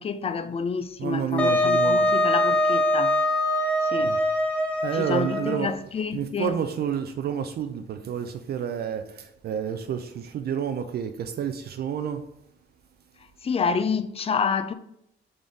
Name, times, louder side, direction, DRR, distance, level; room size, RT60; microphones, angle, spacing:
voice 1, 0.0-3.2 3.8-4.2 4.9-6.6 13.4-14.7, left 5 dB, 30° left, 0.4 m, -28 dB
voice 2, 1.0-2.1 4.0-4.2 4.8-5.7 6.1-12.2, right 8 dB, 55° right, 0.4 m, -29 dB
Wind instrument woodwind instrument, 1.4-5.7, left 1 dB, 5° left, 0.9 m, -23 dB
3.9 x 3.7 x 3.5 m
cardioid pair, 90°, 20 cm